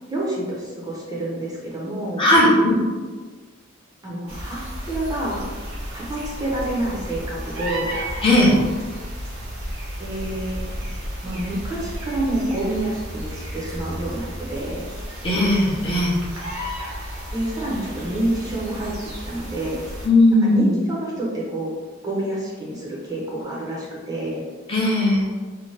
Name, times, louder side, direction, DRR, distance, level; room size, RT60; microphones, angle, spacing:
voice 1, 0.1-2.2 4.0-5.5 5.9-8.0 10.0-10.6 11.2-14.9 17.3-18.9 19.3-19.8 20.4-21.7 22.0-24.4, right 1 dB, 20° right, -5 dB, 0.5 m, -28 dB
voice 2, 2.2-2.8 8.2-8.5 15.2-16.2 20.0-20.8 24.7-25.2, left 1 dB, 25° left, -5 dB, 0.6 m, -17 dB
sound 1, 4.3-20.1, equal, 65° right, 0.8 m, -33 dB
2.6 x 2.2 x 3.1 m, 1.4 s
head